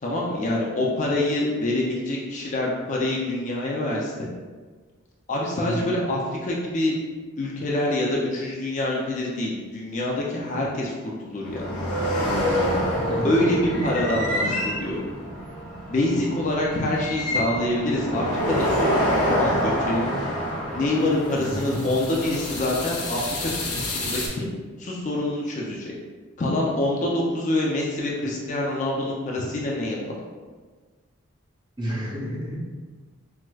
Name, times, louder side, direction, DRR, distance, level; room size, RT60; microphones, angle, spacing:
voice 1, 0.0-4.3 5.3-6.9 7.4-11.7 12.6-12.7 13.2-15.0 15.9-20.1 20.7-24.5 24.8-25.9 26.4-30.2, left 1 dB, 35° left, -3 dB, 0.4 m, -26 dB
sound 1, 11.4-24.3, equal, 90° left, 0.9 m, -27 dB
voice 2, 12.9-13.3 21.3-21.9 31.8-32.6, equal, 20° right, -5 dB, 0.5 m, -30 dB
4.5 x 2.1 x 2.2 m, 1.4 s
head